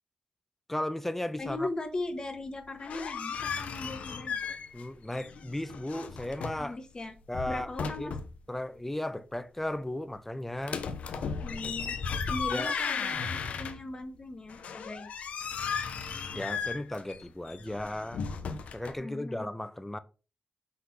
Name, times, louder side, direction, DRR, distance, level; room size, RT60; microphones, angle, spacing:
voice 1, 0.7-1.7 4.7-6.8 7.3-7.7 8.0-8.1 8.5-10.8 12.5-12.7 16.3-18.2 18.7-20.0, left 1 dB, 10° left, 0.8 m, -35 dB
voice 2, 1.4-4.4 6.6-7.1 7.5-8.2 11.4-12.0 12.2-15.1 19.0-19.5, left 2 dB, 35° left, 1.6 m, -38 dB
sound 1, 2.6-4.9 5.1-6.7 7.2-8.4 10.6-14.0 14.5-18.9, left 6 dB, 80° left, 0.9 m, -35 dB
6.1 x 4.0 x 5.6 m
cardioid pair, 70°, 2 cm